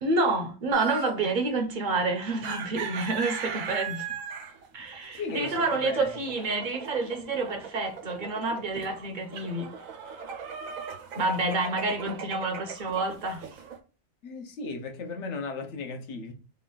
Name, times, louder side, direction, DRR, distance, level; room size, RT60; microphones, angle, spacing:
voice 1, 0.0-4.1 4.7-9.7 11.2-13.5, right 3 dB, 45° right, 0.8 m, -28 dB
sound 1, 0.7-1.3 2.3-13.8, right 7 dB, 85° right, 1.1 m, -38 dB
voice 2, 5.1-6.1 14.2-16.3, left 3 dB, 65° left, 1.1 m, -35 dB
3.3 x 2.4 x 3.8 m
omnidirectional pair, 1.3 m